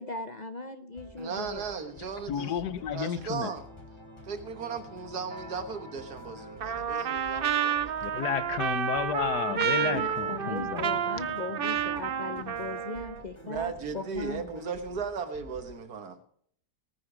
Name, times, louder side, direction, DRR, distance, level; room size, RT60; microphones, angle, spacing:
voice 1, 0.0-1.6 9.5-14.4, left 3 dB, 45° left, 0.6 m, -38 dB
sound 1, 0.9-15.8, left 1 dB, 15° left, 3.8 m, -49 dB
voice 2, 1.2-2.5 2.9-3.6 4.2-7.9 9.9-10.1 13.4-16.2, right 5 dB, 75° right, 1.8 m, -36 dB
voice 3, 2.3-3.5 8.0-11.0, left 9 dB, 85° left, 1.4 m, -32 dB
sound 2, 4.6-12.0, right 1 dB, 15° right, 1.0 m, -53 dB
Trumpet, 6.6-13.2, right 8 dB, 55° right, 0.6 m, -30 dB
17.5 x 9.7 x 5.0 m
omnidirectional pair, 1.7 m